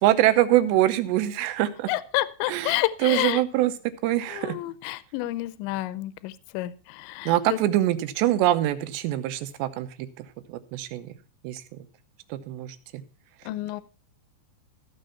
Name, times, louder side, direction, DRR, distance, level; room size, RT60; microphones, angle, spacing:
voice 1, 0.0-1.9 2.5-4.6 7.3-11.1 11.4-11.6 12.3-13.0, right 14 dB, 80° right, 11 dB, 2.9 m, -24 dB
voice 2, 1.9-3.4 4.3-7.3 13.5-13.8, left 17 dB, 85° left, 16 dB, 2.9 m, -29 dB
15.0 x 6.8 x 5.6 m, 0.38 s
omnidirectional pair, 5.3 m